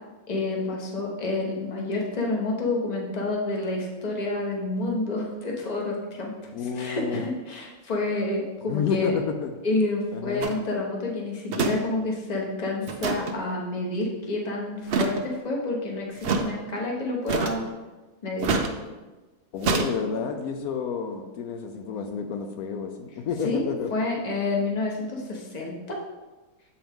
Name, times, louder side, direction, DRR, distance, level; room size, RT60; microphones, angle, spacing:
voice 1, 0.3-6.3 6.7-9.2 9.6-17.6 18.2-18.5 23.4-26.0, left 2 dB, 30° left, -1 dB, 1.0 m, -29 dB
voice 2, 6.5-7.3 8.7-9.5 10.1-10.5 19.5-23.9, left 6 dB, 80° left, 4 dB, 1.1 m, -30 dB
sound 1, 10.4-10.6 11.5-11.8 12.0-12.1 12.9-13.3 14.9-15.2 16.2-16.5 17.3-17.7 18.4-18.7 19.6-19.9, right 4 dB, 60° right, 0.6 m, -25 dB
7.5 x 4.5 x 3.5 m, 1.2 s
omnidirectional pair, 1.5 m